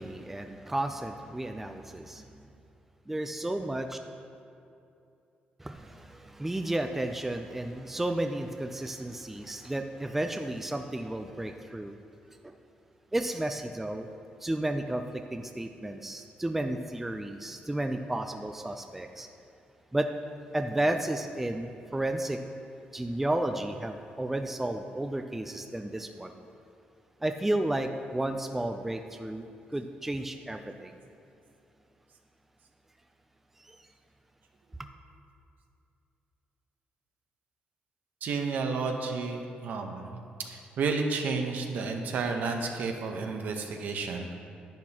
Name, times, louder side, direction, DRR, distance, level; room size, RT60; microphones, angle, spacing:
voice 1, 0.0-2.5 3.1-4.0 5.6-12.0 12.4-12.5 13.1-14.1 14.4-19.3 19.9-20.1 20.5-22.4 22.9-26.3 27.2-31.0 33.6-33.9, right 1 dB, 10° right, 6 dB, 0.4 m, -32 dB
voice 2, 38.2-44.3, right 4 dB, 65° right, 3 dB, 1.0 m, -31 dB
10.5 x 10.0 x 2.9 m, 2.6 s
cardioid pair, 130°, 3 cm